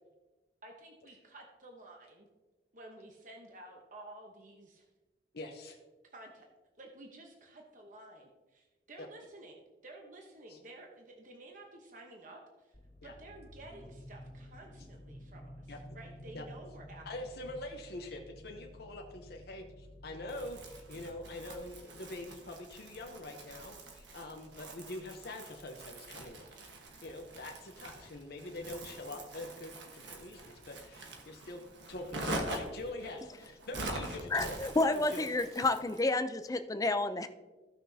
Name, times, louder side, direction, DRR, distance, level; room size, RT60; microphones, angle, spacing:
voice 1, 0.6-2.3 2.7-4.8 6.1-6.5 6.8-12.8 13.0-17.3, right 2 dB, 45° right, 1 dB, 1.0 m, -52 dB
voice 2, 5.3-5.8 9.0-9.1 10.5-10.6 13.0-13.1 15.7-15.8 16.3-16.4 17.0-26.5 27.0-31.6 31.9-34.6 34.8-35.3, left 2 dB, 60° left, 2 dB, 0.8 m, -44 dB
sound 1, 12.7-21.8, left 1 dB, 80° left, 2.5 m, -52 dB
Crumpling crinkling, 20.3-36.1, right 1 dB, 90° right, 1.3 m, -44 dB
voice 3, 34.3-37.3, left 2 dB, 20° left, 9 dB, 0.5 m, -30 dB
15.5 x 6.0 x 2.7 m, 1.2 s
head